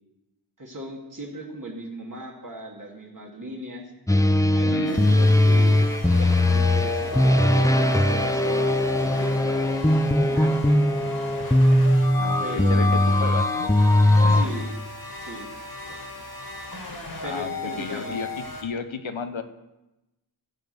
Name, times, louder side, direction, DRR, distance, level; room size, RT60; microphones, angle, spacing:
voice 1, 0.6-3.9 4.5-10.5 12.4-12.8 14.3-14.7 15.2-15.5 15.9-16.3 16.8-18.2, right 1 dB, 45° right, 0 dB, 2.3 m, -38 dB
sound 1, 4.1-14.5, left 1 dB, 5° left, 0.6 m, -20 dB
voice 2, 4.7-5.2 12.1-12.9 13.2-13.7 14.2-14.4 17.2-19.4, left 5 dB, 85° left, 9 dB, 0.9 m, -33 dB
sound 2, 4.8-18.6, left 3 dB, 50° left, 2.1 m, -35 dB
15.0 x 5.1 x 7.7 m, 0.97 s
wide cardioid pair, 65°, 46 cm